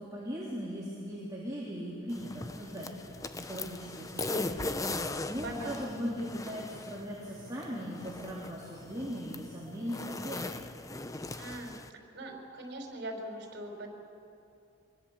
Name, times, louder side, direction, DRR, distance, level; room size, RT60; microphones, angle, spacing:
voice 1, 0.0-10.7, equal, 20° right, -6 dB, 3.4 m, -39 dB
sound 1, 2.1-11.9, left 2 dB, 15° left, 0.7 m, -39 dB
voice 2, 5.4-5.7 11.4-11.8 12.1-13.9, right 1 dB, 60° right, 2 dB, 4.7 m, -41 dB
24.5 x 22.5 x 7.3 m, 2.7 s
head